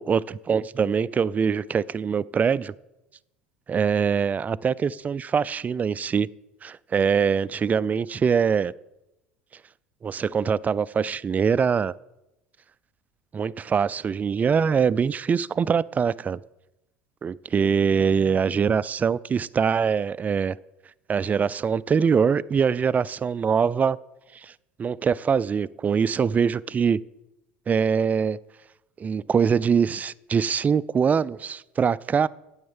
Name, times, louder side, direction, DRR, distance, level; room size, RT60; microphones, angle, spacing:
voice 1, 0.0-2.7 3.7-6.3 6.6-8.7 10.0-11.9 13.3-16.4 17.2-20.6 21.1-24.0 24.4-24.5 24.8-27.0 27.7-28.4 29.0-32.3, right 6 dB, 25° right, 20 dB, 0.3 m, -23 dB
9.2 x 7.9 x 7.3 m, 0.96 s
hypercardioid pair, 75°, 6 cm